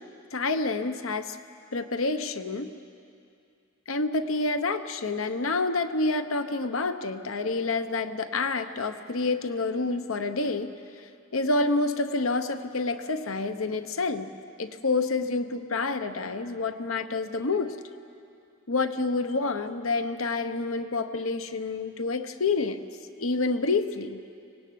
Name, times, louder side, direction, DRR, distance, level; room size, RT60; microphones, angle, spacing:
voice 1, 0.3-1.4 1.7-2.7 3.9-10.7 11.3-14.3 14.6-17.8 18.7-22.9 23.2-24.2, left 3 dB, 85° left, 9 dB, 1.0 m, -28 dB
24.0 x 18.5 x 9.4 m, 2.5 s
head